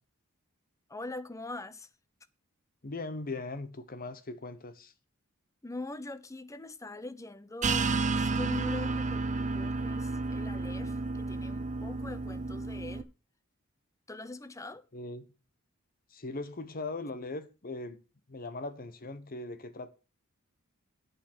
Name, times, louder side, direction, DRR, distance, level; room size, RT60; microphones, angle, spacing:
voice 1, 0.9-1.9 5.6-13.1 14.1-14.8, left 2 dB, 15° left, 0.6 m, -43 dB
voice 2, 2.8-4.9 14.9-15.2 16.1-18.0 18.3-19.9, left 2 dB, 45° left, 1.1 m, -39 dB
sound 1, 7.6-13.0, right 3 dB, 35° right, 0.7 m, -31 dB
8.7 x 7.4 x 6.2 m
head